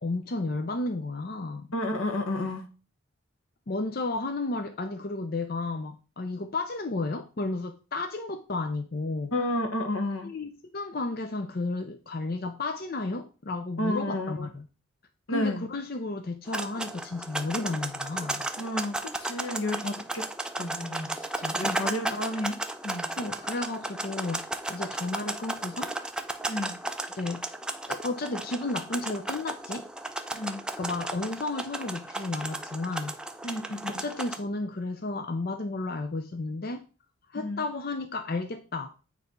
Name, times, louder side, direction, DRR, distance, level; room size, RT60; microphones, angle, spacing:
voice 1, 0.0-1.7 3.7-9.3 10.2-14.7 15.3-18.5 21.6-21.8 23.2-25.9 27.2-27.4 27.9-29.9 30.8-33.2 33.9-36.8 37.3-38.9, left 2 dB, 45° left, 0.6 m, -33 dB
voice 2, 1.7-2.7 9.3-10.3 13.8-14.5 15.3-15.6 18.6-20.2 20.6-22.6 22.8-23.1 26.5-26.8 30.3-30.6 33.4-34.1 37.4-37.6, left 1 dB, 80° left, 1.4 m, -31 dB
sound 1, 16.5-34.4, right 2 dB, 5° right, 0.4 m, -34 dB
8.9 x 3.2 x 5.3 m
head